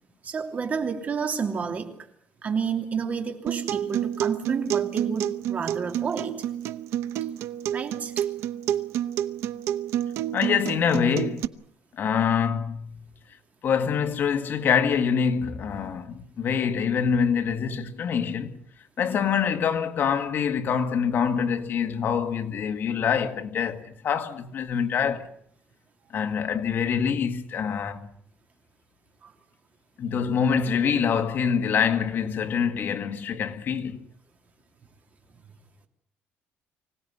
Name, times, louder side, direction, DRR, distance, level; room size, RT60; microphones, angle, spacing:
voice 1, 0.2-1.9 2.4-6.3 7.7-8.2 29.2-29.3, right 6 dB, 35° right, 3.1 m, -30 dB
Acoustic guitar, 3.5-11.4, right 11 dB, 80° right, 0.9 m, -29 dB
voice 2, 10.3-11.5 11.9-13.1 13.6-18.6 19.0-25.3 26.1-28.1 30.0-34.1, left 7 dB, 50° left, 1.9 m, -25 dB
25.0 x 17.5 x 9.6 m
cardioid pair, 140°, 5 cm